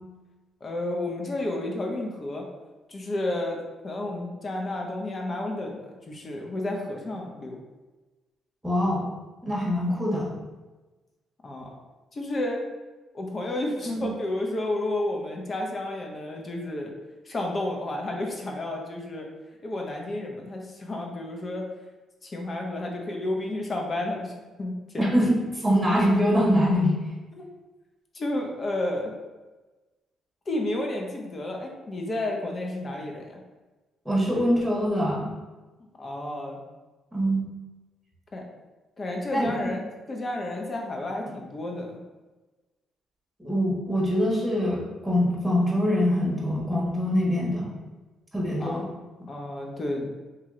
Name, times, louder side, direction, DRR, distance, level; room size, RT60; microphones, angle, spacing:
voice 1, 0.6-2.4 2.9-3.6 3.8-7.6 11.4-11.8 12.1-12.6 13.1-16.9 17.2-19.3 19.6-21.7 22.2-24.3 24.6-25.1 27.3-27.5 28.1-29.1 30.5-33.4 35.8-36.6 38.3-38.4 39.0-39.8 40.1-42.0 48.6-48.8 49.3-50.1, left 1 dB, 35° left, 1 dB, 0.8 m, -31 dB
voice 2, 8.6-9.1 9.4-10.3 13.9-14.1 25.0-27.0 34.0-35.3 37.1-37.4 39.3-39.7 43.4-47.7 48.3-48.8, equal, ahead, -4 dB, 1.4 m, -24 dB
3.0 x 2.8 x 3.7 m, 1.2 s
cardioid pair, 90°, 0 cm